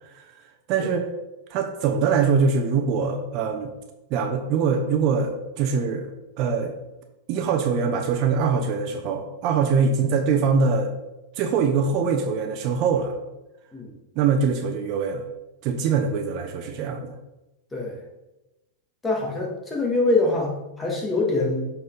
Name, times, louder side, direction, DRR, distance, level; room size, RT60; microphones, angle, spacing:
voice 1, 0.7-1.1 1.5-3.7 4.1-6.7 7.3-10.9 11.4-13.1 14.2-15.2 15.6-17.1, right 5 dB, 50° right, 4 dB, 0.9 m, -23 dB
voice 2, 19.0-21.7, left 2 dB, 15° left, -1 dB, 1.9 m, -24 dB
7.4 x 4.3 x 4.0 m, 0.99 s
hypercardioid pair, 120°, 0 cm